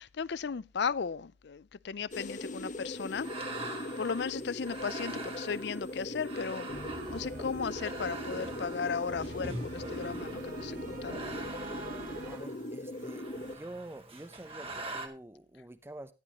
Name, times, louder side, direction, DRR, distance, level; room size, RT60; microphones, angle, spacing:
voice 1, 0.0-3.3 4.0-6.8 7.1-11.2, left 6 dB, 60° left, 0.5 m, -36 dB
sound 1, 2.1-13.6, left 1 dB, 40° left, 1.3 m, -40 dB
sound 2, 3.1-15.1, right 2 dB, 30° right, 2.0 m, -44 dB
sound 3, 6.7-12.4, right 2 dB, 50° right, 2.5 m, -45 dB
voice 2, 12.2-16.1, right 1 dB, 15° right, 0.7 m, -47 dB
14.0 x 11.0 x 2.9 m
head